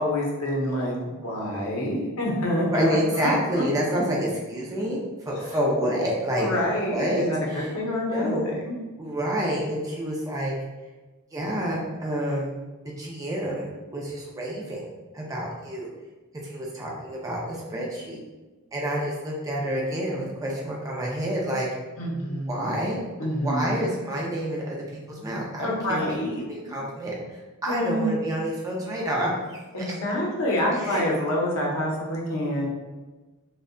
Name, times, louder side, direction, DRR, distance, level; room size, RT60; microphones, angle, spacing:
voice 1, 0.0-3.6 3.9-4.1 5.4-5.6 6.4-8.7 22.0-22.8 23.2-23.8 25.6-26.4 27.7-28.2 29.7-32.7, left 1 dB, 65° left, -3 dB, 0.6 m, -27 dB
voice 2, 2.7-6.5 6.9-7.7 8.1-8.5 9.0-10.5 11.3-12.5 13.0-14.8 15.1-15.9 16.5-18.2 18.7-21.7 22.5-24.8 25.1-26.0 26.4-29.6 29.9-30.0 30.7-31.0, equal, 15° right, -3 dB, 0.3 m, -28 dB
2.6 x 2.1 x 2.5 m, 1.2 s
head